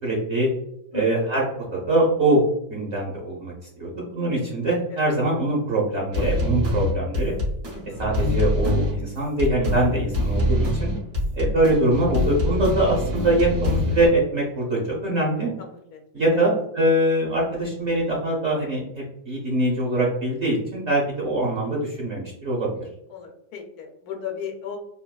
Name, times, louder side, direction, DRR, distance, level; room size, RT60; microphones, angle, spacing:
voice 1, 0.0-0.5 0.9-1.4 1.7-2.4 2.7-7.3 8.0-10.9 11.4-15.5 16.1-22.7, right 1 dB, 60° right, -3 dB, 0.9 m, -23 dB
voice 2, 4.9-5.3 7.7-8.1 15.6-16.0 16.3-16.5 23.1-24.8, left 7 dB, 80° left, 3 dB, 1.1 m, -36 dB
sound 1, 6.1-14.1, left 1 dB, 90° right, 1.5 m, -24 dB
3.5 x 2.2 x 2.2 m, 0.79 s
omnidirectional pair, 1.6 m